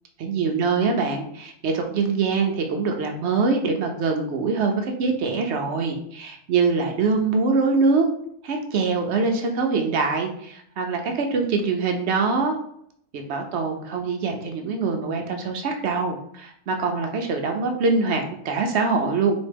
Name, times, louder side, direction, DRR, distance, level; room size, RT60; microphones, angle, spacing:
voice 1, 0.2-8.1 8.4-12.6 13.1-19.4, right 4 dB, 65° right, 3 dB, 0.7 m, -24 dB
4.1 x 3.1 x 3.3 m, 0.70 s
omnidirectional pair, 1.6 m